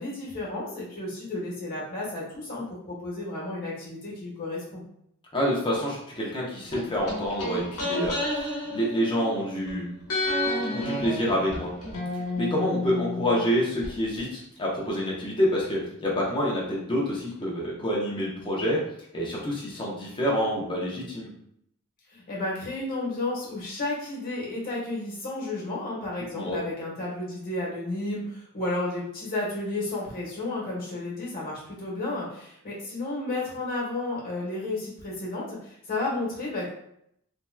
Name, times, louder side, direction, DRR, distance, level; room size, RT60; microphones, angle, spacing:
voice 1, 0.0-4.8 22.1-36.7, left 2 dB, 40° left, -6 dB, 1.3 m, -32 dB
voice 2, 5.3-8.4 8.7-10.0 10.5-11.7 12.3-18.8 19.1-21.3 26.3-26.6, equal, 20° left, -4 dB, 0.8 m, -27 dB
sound 1, 6.7-9.7 10.1-13.9 14.2-14.3, left 2 dB, 90° left, 1.1 m, -31 dB
3.4 x 2.9 x 2.2 m, 0.74 s
head